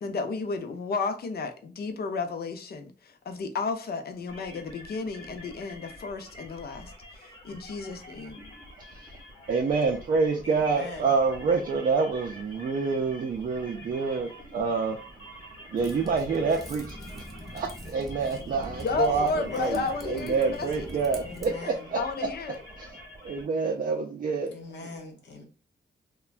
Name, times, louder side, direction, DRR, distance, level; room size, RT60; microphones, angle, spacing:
voice 1, 0.0-8.5 18.8-20.9 21.6-21.7 22.0-22.6, left 4 dB, 60° left, 0.5 m, -32 dB
sound 1, 4.3-23.4, left 1 dB, 30° left, 1.0 m, -47 dB
voice 2, 8.8-9.1 9.5-15.0 15.6-17.3 17.5-22.0 22.8-24.5, right 4 dB, 50° right, 0.4 m, -27 dB
voice 3, 10.4-11.2 19.1-19.9 21.2-21.9 24.4-25.4, left 2 dB, 85° left, 0.9 m, -42 dB
Typing, 15.8-21.5, equal, ahead, 0.6 m, -43 dB
3.2 x 2.1 x 2.4 m
wide cardioid pair, 145°, 18 cm